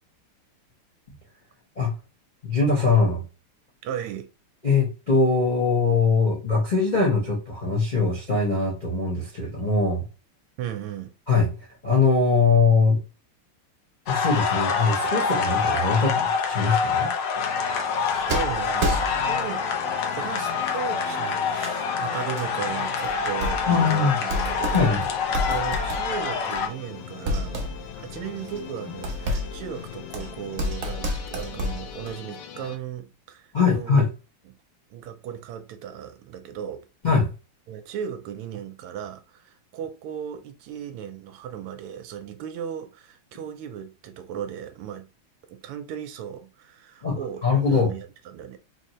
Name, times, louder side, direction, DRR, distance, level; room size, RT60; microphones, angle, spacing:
voice 1, 2.4-3.2 4.6-10.0 11.3-13.0 14.1-17.1 23.7-24.2 24.7-25.0 33.5-34.1 37.0-37.3 47.0-47.2 47.4-47.9, left 4 dB, 45° left, 0.5 m, -22 dB
voice 2, 3.8-4.3 10.6-11.1 17.7-19.6 20.1-25.0 25.3-27.6 28.0-34.0 34.5-34.6 34.9-36.9 37.7-45.1 45.5-47.4 47.7-48.6, right 9 dB, 85° right, 1.6 m, -36 dB
sound 1, 14.1-26.7, left 5 dB, 65° left, 1.2 m, -26 dB
sound 2, 17.4-32.8, left 8 dB, 80° left, 1.6 m, -41 dB
sound 3, 18.3-19.6 20.2-20.9 21.6-21.8 22.4-22.5 23.0-23.9 24.2-26.9 27.3-32.2, equal, 55° right, 0.9 m, -30 dB
4.1 x 2.7 x 3.0 m
omnidirectional pair, 2.4 m